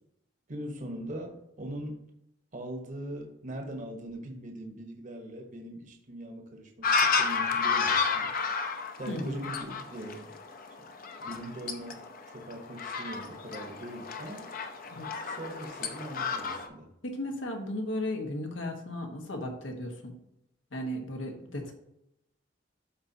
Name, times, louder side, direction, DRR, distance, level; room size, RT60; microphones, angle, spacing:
voice 1, 0.5-2.1 2.5-8.3 9.0-10.4 10.8-10.9 11.2-12.1 12.3-14.5 15.2-16.9, right 1 dB, 45° right, 2 dB, 1.0 m, -41 dB
September Hanningfield Soundscape, 6.8-16.7, left 5 dB, 50° left, 0.7 m, -31 dB
voice 2, 9.1-9.4 14.9-15.1 17.0-20.2 20.7-21.7, left 1 dB, 85° left, 3 dB, 1.3 m, -35 dB
12.5 x 4.2 x 2.8 m, 0.81 s
head